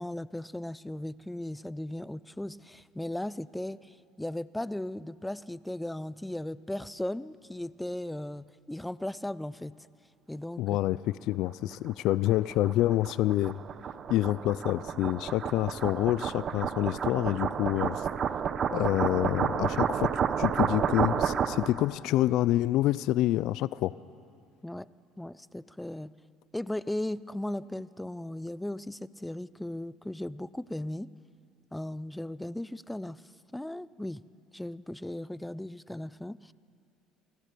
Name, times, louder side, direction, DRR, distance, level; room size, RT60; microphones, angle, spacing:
voice 1, 0.0-9.7 10.3-10.6 24.6-24.9 25.2-26.1 26.5-31.1 31.7-33.2 33.5-34.2 34.5-36.5, left 1 dB, 5° left, 18 dB, 0.6 m, -37 dB
voice 2, 10.6-13.6 14.1-18.1 18.7-20.1 20.4-23.9, left 15 dB, 70° left, 18 dB, 0.4 m, -27 dB
sound 1, 11.9-21.8, right 7 dB, 50° right, 1.1 m, -30 dB
28.5 x 19.0 x 6.8 m, 2.6 s
supercardioid pair, 80°, 0 cm